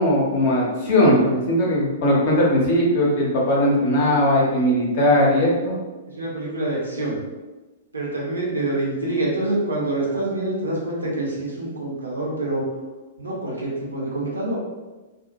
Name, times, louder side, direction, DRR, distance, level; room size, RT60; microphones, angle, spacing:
voice 1, 0.0-5.7, left 1 dB, 45° left, -3 dB, 0.7 m, -19 dB
voice 2, 6.1-7.2 7.9-12.6 13.2-14.6, right 2 dB, 75° right, -4 dB, 0.8 m, -26 dB
2.3 x 2.1 x 2.7 m, 1.2 s
figure-of-eight pair, 105°, 0 cm